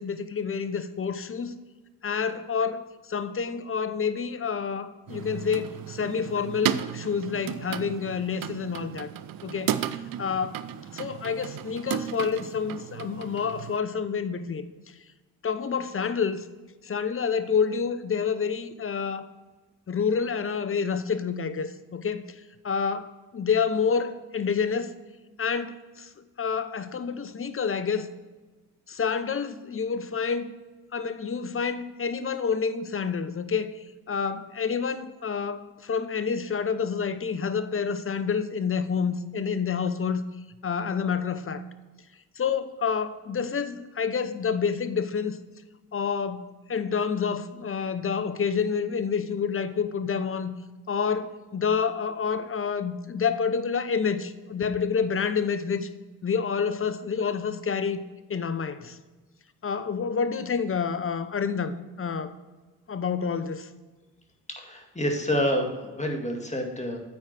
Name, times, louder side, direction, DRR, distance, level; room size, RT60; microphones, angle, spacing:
voice 1, 0.0-1.5 2.0-9.1 9.4-14.7 15.4-16.4 16.8-19.3 19.9-22.2 22.6-24.9 25.4-26.1 26.4-28.1 28.9-30.5 30.9-40.2 40.6-41.6 42.4-45.4 45.9-50.5 50.9-55.9 56.2-58.0 58.3-59.0 59.6-62.3 62.9-63.7, left 6 dB, 30° left, 12 dB, 0.8 m, -28 dB
sound 1, 5.1-13.8, right 10 dB, 55° right, 0.6 m, -34 dB
voice 2, 64.5-67.0, equal, 15° left, 2 dB, 2.1 m, -28 dB
8.7 x 4.8 x 6.0 m, 1.3 s
hypercardioid pair, 40°, 41 cm